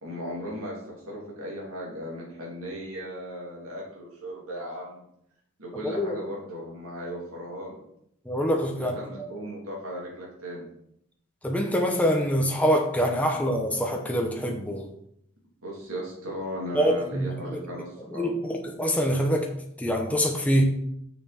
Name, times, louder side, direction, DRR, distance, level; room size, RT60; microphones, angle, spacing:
voice 1, 0.0-0.8 1.1-5.0 5.6-7.8 8.7-10.7 15.6-18.3, equal, 80° right, -3 dB, 3.1 m, -37 dB
voice 2, 5.8-6.1 8.3-9.3 11.4-14.9 16.7-17.6 18.1-19.5 19.8-20.6, equal, 5° left, 1 dB, 0.9 m, -25 dB
6.8 x 6.3 x 4.3 m, 0.73 s
head